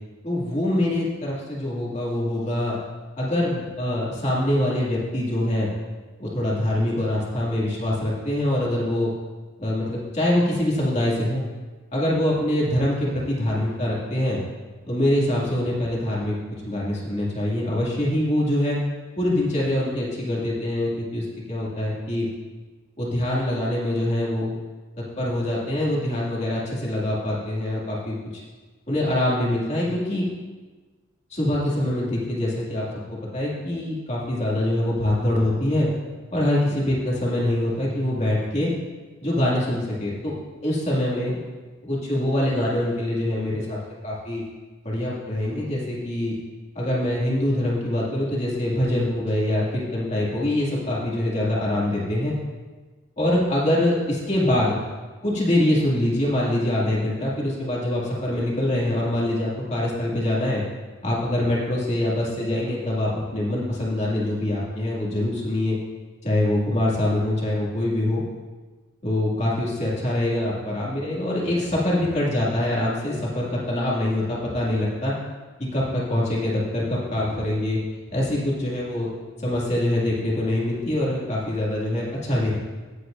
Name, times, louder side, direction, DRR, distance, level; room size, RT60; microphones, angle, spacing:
voice 1, 0.2-2.8 3.2-5.7 6.2-9.1 9.6-11.4 11.9-14.4 14.9-16.4 16.6-18.8 19.2-22.3 23.0-24.5 25.2-28.2 28.9-30.2 31.3-32.8 33.3-35.9 36.3-38.7 39.2-40.3 40.6-41.4 41.8-43.8 44.0-44.4 44.8-46.4 46.7-52.4 53.2-54.8 55.2-60.6 61.0-65.8 66.2-68.2 69.0-75.2 75.6-77.8 78.1-79.1 79.4-82.6, left 1 dB, 30° left, -5 dB, 2.3 m, -24 dB
17.0 x 8.0 x 2.6 m, 1.3 s
head